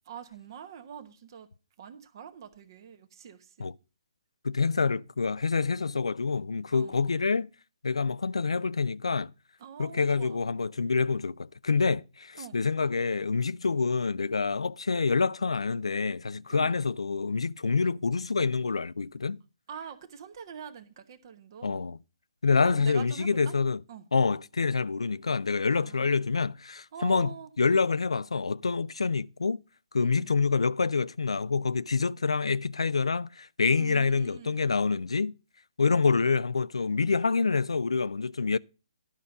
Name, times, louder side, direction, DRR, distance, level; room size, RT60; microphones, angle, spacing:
voice 1, 0.0-1.5 1.8-3.7 6.7-7.0 9.6-10.4 12.4-12.6 16.5-16.8 19.7-21.9 22.6-23.5 23.9-24.1 25.7-26.1 26.9-27.5 30.0-30.3 33.8-34.7 36.1-36.3, right 8 dB, 45° right, 1.1 m, -45 dB
voice 2, 4.4-7.5 7.8-9.3 9.8-19.4 21.6-22.0 22.4-23.8 24.1-27.3 27.6-29.6 29.9-35.3 35.8-38.6, left 4 dB, 80° left, 0.4 m, -27 dB
11.5 x 5.2 x 6.9 m
figure-of-eight pair, 145°, 3 cm